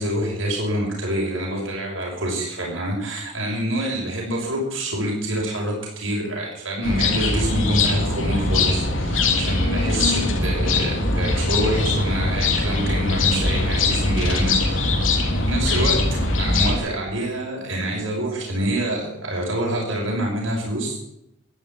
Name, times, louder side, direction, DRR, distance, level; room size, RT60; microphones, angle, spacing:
voice 1, 0.0-15.1 15.5-16.0 16.4-21.0, right 1 dB, 80° right, -2 dB, 6.5 m, -26 dB
sound 1, 6.8-16.7, left 2 dB, 85° left, 3.2 m, -21 dB
13.5 x 12.0 x 8.8 m, 0.81 s
head